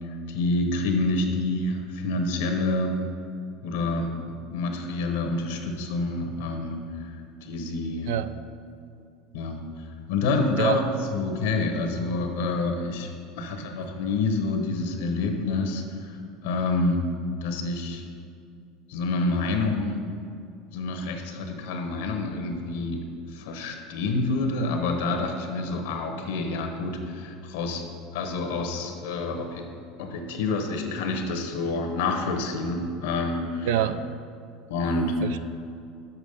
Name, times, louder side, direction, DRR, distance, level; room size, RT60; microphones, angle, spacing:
voice 1, 0.0-3.0 3.6-4.1 4.5-7.1 7.4-8.1 9.3-10.8 11.1-13.1 13.4-17.1 17.4-18.1 18.9-20.0 20.7-27.8 28.1-29.7 30.0-33.9 34.7-35.4, left 3 dB, 85° left, 4 dB, 1.1 m, -28 dB
voice 2, 33.7-34.2 35.2-35.5, right 11 dB, 75° right, 12 dB, 0.4 m, -26 dB
7.1 x 6.5 x 5.3 m, 2.4 s
supercardioid pair, 110°, 0 cm